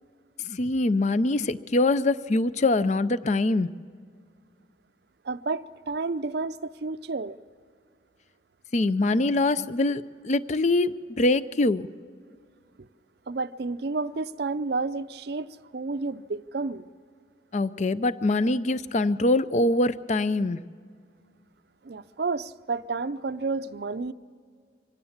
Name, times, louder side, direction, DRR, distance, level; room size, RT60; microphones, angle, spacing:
voice 1, 0.4-3.7 8.7-11.9 17.5-20.6, left 2 dB, 40° left, 0.5 m, -24 dB
voice 2, 5.2-7.4 13.3-16.9 21.8-24.1, right 3 dB, 60° right, 0.5 m, -31 dB
24.0 x 16.5 x 7.2 m
head